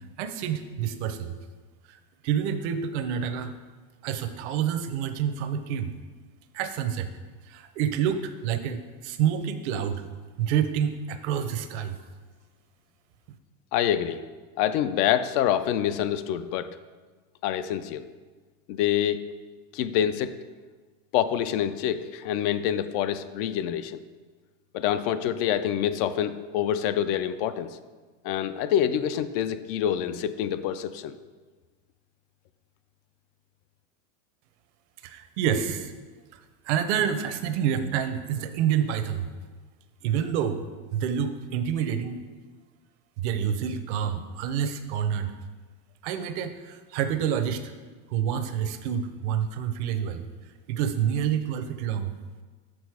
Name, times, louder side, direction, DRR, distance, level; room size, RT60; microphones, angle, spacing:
voice 1, 0.2-1.3 1.9-3.5 4.0-5.9 6.5-7.1 7.5-10.0 10.4-12.0 35.0-35.9 36.6-39.3 40.0-40.6 40.9-42.2 43.2-45.3 46.0-47.7 48.1-50.3 50.7-52.1, right 8 dB, 60° right, 9 dB, 0.8 m, -28 dB
voice 2, 13.7-14.2 14.6-16.7 17.4-18.0 18.7-19.3 19.7-20.3 21.1-24.0 24.7-27.8 28.2-31.1, left 10 dB, 50° left, 13 dB, 0.4 m, -26 dB
6.2 x 6.2 x 4.8 m, 1.4 s
supercardioid pair, 145°, 38 cm